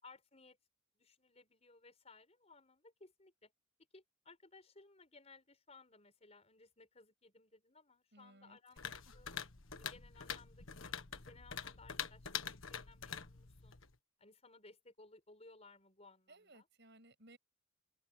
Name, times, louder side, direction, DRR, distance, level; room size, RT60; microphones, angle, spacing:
voice 1, 0.0-0.6 1.0-3.5 3.9-9.4 9.7-13.8 14.2-16.7, left 3 dB, 30° left, 5.4 m, -61 dB
voice 2, 8.1-8.6 16.3-17.4, right 2 dB, 55° right, 7.9 m, -61 dB
sound 1, 8.8-13.9, left 7 dB, 75° left, 1.5 m, -45 dB
open air
head